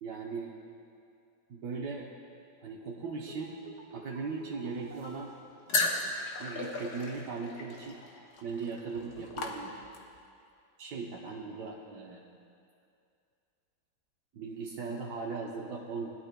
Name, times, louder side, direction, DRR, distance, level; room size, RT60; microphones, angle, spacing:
voice 1, 0.0-0.5 1.5-2.1 2.6-3.6 3.9-5.3 6.4-8.0 8.4-9.8 10.8-12.2 14.3-16.1, right 4 dB, 85° right, -2 dB, 1.5 m, -38 dB
sound 1, 3.0-6.5 6.7-6.8, right 2 dB, 60° right, 2.3 m, -51 dB
sound 2, 5.7-10.2, left 3 dB, 70° left, 1.7 m, -35 dB
20.5 x 12.5 x 2.2 m, 2.5 s
omnidirectional pair, 1.8 m